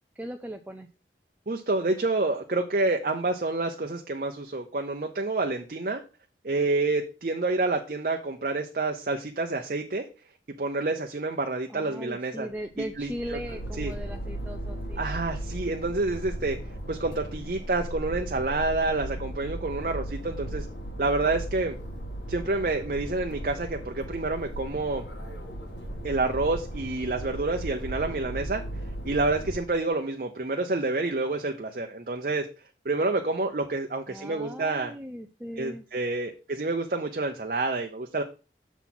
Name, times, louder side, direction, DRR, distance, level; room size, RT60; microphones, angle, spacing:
voice 1, 0.1-0.9 11.7-15.0 34.1-35.8, right 1 dB, 10° right, 4 dB, 0.4 m, -38 dB
voice 2, 1.5-6.0 6.4-10.0 10.6-12.5 13.0-13.4 13.8-13.9 15.0-16.6 16.9-20.7 21.0-21.8 22.3-25.0 26.0-28.6 29.0-32.5 32.8-34.9 35.6-38.2, right 2 dB, 50° right, 4 dB, 0.7 m, -28 dB
sound 1, 12.5-29.8, right 1 dB, 85° left, 2.0 m, -36 dB
7.0 x 4.0 x 6.0 m, 0.32 s
head